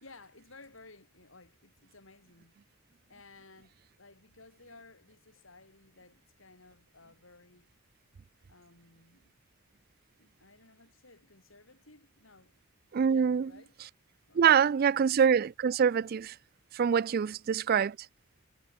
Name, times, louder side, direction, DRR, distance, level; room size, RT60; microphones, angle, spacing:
voice 1, 0.0-2.5 3.1-7.7 8.5-9.3 10.2-12.6 13.1-13.7 14.3-15.2 17.1-17.4, left 3 dB, 70° left, 5.0 m, -57 dB
voice 2, 12.9-13.5 13.8-13.9 14.4-16.3 16.7-18.0, right 7 dB, 45° right, 0.3 m, -25 dB
head